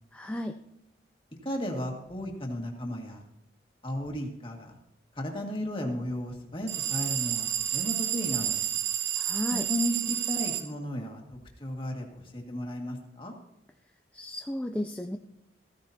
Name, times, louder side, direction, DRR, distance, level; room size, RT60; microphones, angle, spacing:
voice 1, 0.1-0.6 9.2-9.7 14.1-15.2, left 1 dB, 5° left, 5 dB, 0.4 m, -34 dB
voice 2, 1.4-3.2 3.8-4.8 5.2-8.6 9.5-13.3, left 1 dB, 30° left, 1 dB, 1.9 m, -34 dB
sound 1, 6.7-10.7, right 10 dB, 80° right, 1.0 m, -30 dB
15.0 x 14.5 x 2.8 m, 0.87 s
head